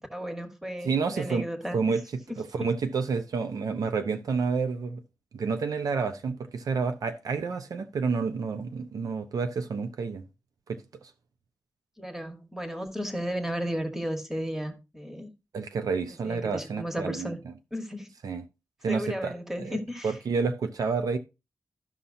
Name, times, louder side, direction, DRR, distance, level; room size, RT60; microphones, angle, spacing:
voice 1, 0.1-2.0 2.3-2.7 12.0-15.3 16.2-17.4 17.7-18.1 18.8-20.2, equal, 5° right, 1.2 m, -34 dB
voice 2, 0.8-1.4 1.7-2.0 2.4-5.0 5.3-10.2 10.7-11.1 15.5-17.3 18.2-18.4 18.8-19.3 19.6-19.8 20.0-21.2, right 5 dB, 70° right, 0.6 m, -29 dB
13.0 x 5.6 x 2.6 m
wide cardioid pair, 110°, 6 cm